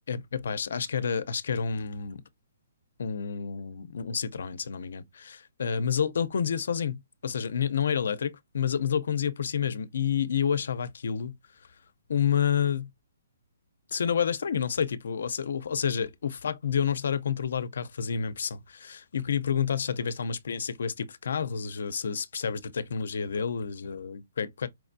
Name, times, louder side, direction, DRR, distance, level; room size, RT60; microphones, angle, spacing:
voice 1, 0.1-2.2 3.0-11.3 12.1-12.9 13.9-24.7, left 7 dB, 60° left, 0.6 m, -29 dB
4.7 x 3.4 x 2.6 m
hypercardioid pair, 175°, 0 cm